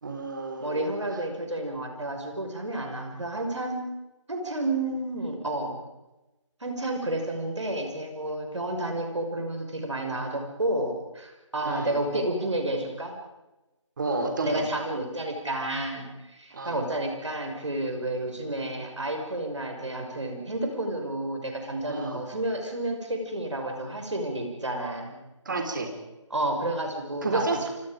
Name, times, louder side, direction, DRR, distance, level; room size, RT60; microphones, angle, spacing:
voice 1, 0.0-0.9 11.6-12.0 14.0-14.7 16.5-16.8 21.9-22.2 25.5-25.9 27.2-27.7, right 3 dB, 40° right, 5 dB, 3.8 m, -30 dB
voice 2, 0.6-3.8 4.3-5.8 6.6-13.1 14.4-25.2 26.3-27.7, right 1 dB, 65° right, 3 dB, 5.8 m, -31 dB
28.5 x 25.0 x 5.1 m, 1.0 s
figure-of-eight pair, 160°, 16 cm